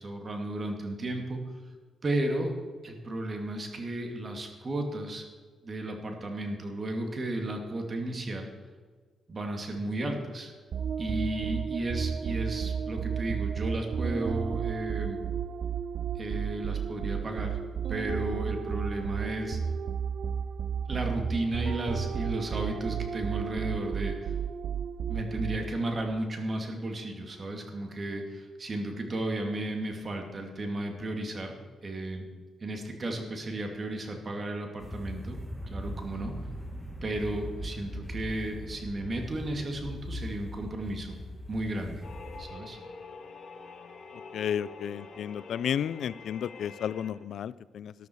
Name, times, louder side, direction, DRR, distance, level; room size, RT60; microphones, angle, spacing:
voice 1, 0.0-1.4 2.0-2.5 2.8-5.2 5.6-8.5 9.3-10.5 11.0-15.2 16.1-17.6 17.9-19.6 20.9-24.3 25.1-31.5 31.8-32.2 32.6-35.4 35.6-36.3 37.0-41.2 41.5-42.0 42.4-42.8, right 1 dB, 40° right, 3 dB, 2.5 m, -34 dB
sound 1, 10.7-25.9, right 7 dB, 65° right, 0.6 m, -33 dB
sound 2, 34.8-42.4, equal, 5° left, 2.1 m, -40 dB
sound 3, 42.0-47.1, left 4 dB, 50° left, 1.7 m, -46 dB
voice 2, 44.3-47.9, left 9 dB, 70° left, 19 dB, 0.3 m, -32 dB
13.5 x 11.5 x 4.7 m, 1.5 s
cardioid pair, 70°, 0 cm